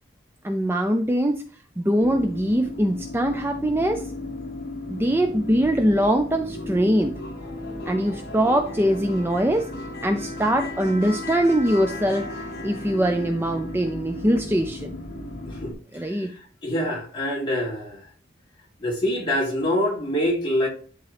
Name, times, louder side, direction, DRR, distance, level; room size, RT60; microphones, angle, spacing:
voice 1, 0.4-1.4 1.8-4.1 4.9-7.2 7.9-9.7 10.0-12.3 12.6-14.9 15.9-16.3, right 1 dB, 10° right, 0.4 m, -22 dB
sound 1, 2.0-15.7, left 2 dB, 55° left, 1.6 m, -35 dB
voice 2, 16.6-18.0 18.8-20.7, equal, 25° left, 3.0 m, -25 dB
11.0 x 3.7 x 3.4 m
head